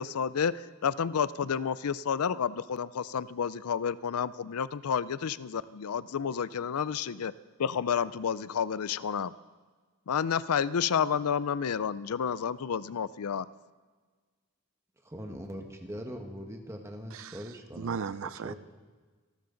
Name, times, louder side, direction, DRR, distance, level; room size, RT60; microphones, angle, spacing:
voice 1, 0.0-7.3 7.6-9.3 10.1-13.5, left 7 dB, 85° left, 17 dB, 0.5 m, -30 dB
voice 2, 15.0-18.0 18.4-18.6, equal, 10° right, 3 dB, 1.4 m, -41 dB
voice 3, 17.8-18.5, right 6 dB, 60° right, 15 dB, 0.4 m, -36 dB
27.0 x 12.5 x 3.9 m, 1.4 s
head